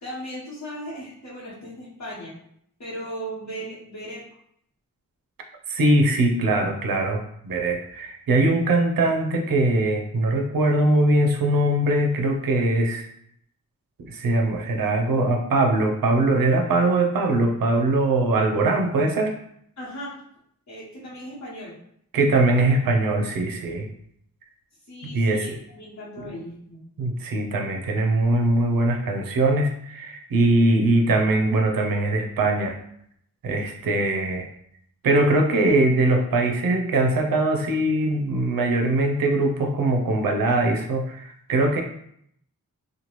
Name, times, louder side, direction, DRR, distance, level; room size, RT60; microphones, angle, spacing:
voice 1, 0.0-2.3 2.8-4.2 19.8-20.1 20.7-21.7 24.9-25.5 25.8-26.8, equal, 55° left, -8 dB, 1.1 m, -37 dB
voice 2, 5.7-13.1 14.0-19.3 22.1-23.9 25.1-25.5 26.2-26.3 27.0-32.8 33.4-34.5 35.0-41.8, right 2 dB, 85° right, 4 dB, 0.5 m, -21 dB
2.9 x 2.2 x 3.0 m, 0.71 s
wide cardioid pair, 85°, 33 cm